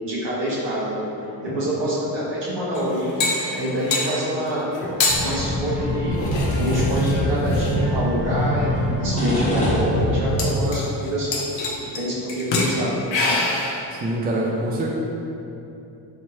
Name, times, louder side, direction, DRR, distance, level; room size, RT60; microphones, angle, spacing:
voice 1, 0.0-1.1 1.4-3.1 3.5-4.6 5.2-6.2 6.5-11.3 11.9-13.5, equal, 60° right, -9 dB, 1.5 m, -26 dB
sound 1, 2.7-4.1 4.7-5.2 6.1-7.7 8.6-8.7 9.1-9.2 9.4-9.5 10.4-11.1 11.3-12.0 12.3-12.7 13.1-13.8, left 3 dB, 60° left, 0.8 m, -25 dB
sound 2, 5.1-10.6, equal, 15° left, 1.1 m, -23 dB
voice 2, 13.9-14.9, right 1 dB, 20° right, -2 dB, 0.4 m, -24 dB
3.4 x 2.9 x 2.8 m, 2.9 s
supercardioid pair, 45°, 49 cm